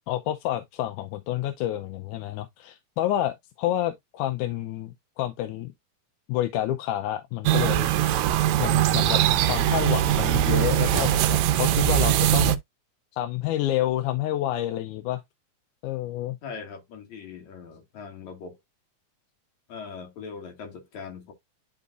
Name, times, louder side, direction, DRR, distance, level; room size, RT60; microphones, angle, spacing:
voice 1, 0.1-5.7 6.3-7.9 8.6-12.6 13.1-15.2 15.8-16.4, left 13 dB, 85° left, 2.2 m, -29 dB
sound 1, 7.5-12.6, right 12 dB, 80° right, 1.8 m, -21 dB
voice 2, 16.4-18.6 19.7-21.3, left 5 dB, 70° left, 3.2 m, -40 dB
11.0 x 3.9 x 2.4 m
omnidirectional pair, 3.4 m